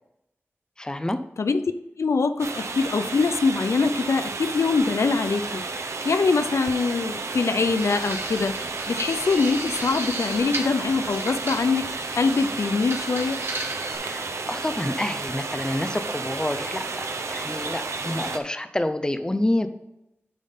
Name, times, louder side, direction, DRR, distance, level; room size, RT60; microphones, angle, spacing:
voice 1, 0.8-1.2 14.0-19.7, left 1 dB, 15° left, 10 dB, 0.6 m, -28 dB
voice 2, 2.0-11.9 12.1-13.4, left 4 dB, 85° left, 10 dB, 0.5 m, -23 dB
sound 1, 2.4-18.4, right 3 dB, 85° right, 0.7 m, -32 dB
sound 2, 7.7-13.9, right 2 dB, 60° right, 1.5 m, -35 dB
10.5 x 3.6 x 5.6 m, 0.88 s
wide cardioid pair, 70°, 5 cm